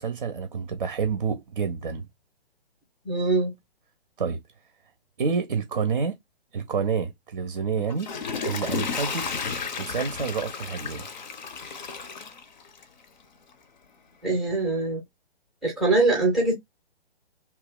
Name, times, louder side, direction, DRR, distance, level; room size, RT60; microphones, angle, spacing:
voice 1, 0.0-2.1 4.2-4.4 5.2-6.2 6.5-8.1 8.4-9.3 9.8-11.1, right 5 dB, 45° right, 0.6 m, -28 dB
voice 2, 3.0-3.5 14.2-15.0 15.6-16.5, right 3 dB, ahead, 0.6 m, -23 dB
Water / Toilet flush, 7.7-13.0 13.5-13.6, left 5 dB, 45° left, 0.6 m, -33 dB
2.8 x 2.2 x 3.5 m
figure-of-eight pair, 130°, 31 cm